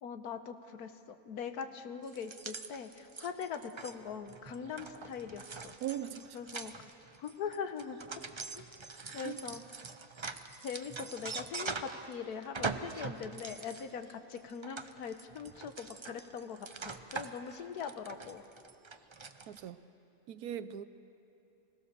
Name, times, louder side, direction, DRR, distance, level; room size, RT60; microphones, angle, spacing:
voice 1, 0.0-5.7 6.3-6.9 7.2-8.0 8.5-8.7 9.1-9.6 10.6-18.4, left 6 dB, 85° left, 9 dB, 1.5 m, -42 dB
sound 1, 2.1-12.1 12.4-19.7, right 4 dB, 45° right, 0.3 m, -43 dB
voice 2, 5.8-6.4 9.0-9.4 19.5-19.8 20.3-20.8, right 10 dB, 80° right, 12 dB, 1.2 m, -40 dB
25.5 x 17.0 x 6.7 m, 2.9 s
omnidirectional pair, 1.6 m